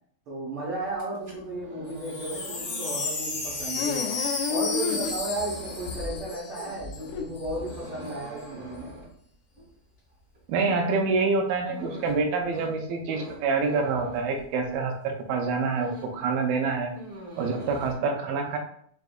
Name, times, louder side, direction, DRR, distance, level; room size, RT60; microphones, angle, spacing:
voice 1, 0.3-4.2 4.5-8.9, right 2 dB, 60° right, -8 dB, 1.5 m, -34 dB
sound 1, 0.9-14.9 15.3-16.3 16.5-17.9, right 1 dB, 35° right, 1.3 m, -45 dB
Wind chime, 1.9-7.1 7.4-7.5 7.7-8.1, left 3 dB, 55° left, 1.4 m, -33 dB
sound 2, 3.7-5.5 5.9-8.1, left 5 dB, 85° left, 1.5 m, -33 dB
voice 2, 10.5-16.9 17.4-18.6, right 4 dB, 85° right, 3 dB, 2.3 m, -26 dB
5.9 x 2.6 x 2.4 m, 0.63 s
omnidirectional pair, 3.9 m